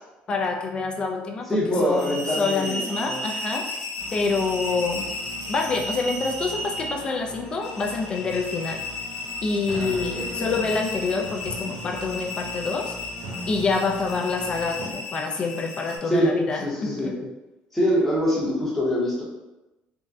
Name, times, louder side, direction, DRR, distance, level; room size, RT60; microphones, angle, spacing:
voice 1, 0.3-1.5 1.8-3.7 4.1-5.0 5.5-8.8 9.4-12.9 13.5-17.3, left 4 dB, 25° left, 3 dB, 0.3 m, -27 dB
voice 2, 1.5-3.2 9.7-9.9 10.1-10.5 16.1-16.3 16.6-16.7 17.0-17.1 17.7-19.2, equal, 5° left, -6 dB, 0.7 m, -24 dB
sound 1, 1.7-16.0, left 2 dB, 85° left, 0.8 m, -34 dB
sound 2, 4.0-14.9, right 1 dB, 80° right, 0.6 m, -40 dB
3.5 x 2.1 x 2.6 m, 1.0 s
cardioid pair, 165°, 4 cm